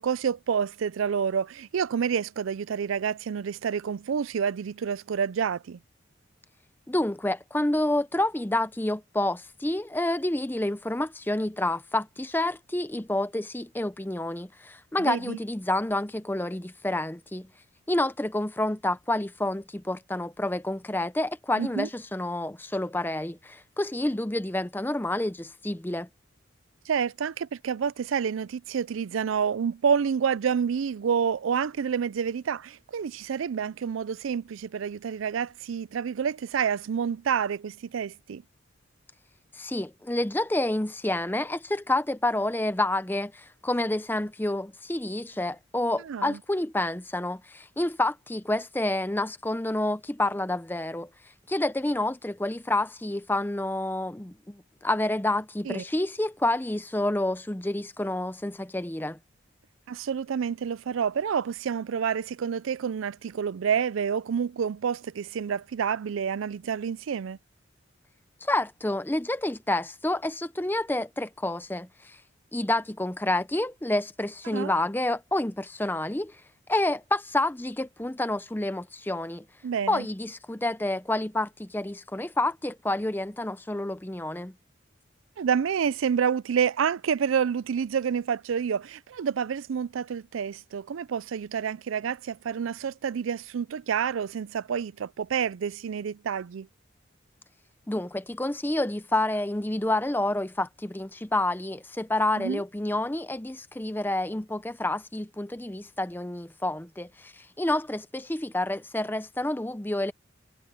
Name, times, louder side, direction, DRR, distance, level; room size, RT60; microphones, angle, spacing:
voice 1, 0.0-5.8 15.0-15.4 21.6-21.9 26.9-38.4 46.0-46.4 55.7-55.8 59.9-67.4 74.5-74.7 79.6-80.1 85.4-96.7 102.4-102.6, right 7 dB, 80° right, 0.4 m, -28 dB
voice 2, 6.9-17.5 17.9-26.1 39.5-51.1 51.5-59.2 68.4-72.2 72.5-76.4 76.7-79.4 79.9-84.5 97.9-110.1, left 1 dB, 10° left, 0.6 m, -29 dB
head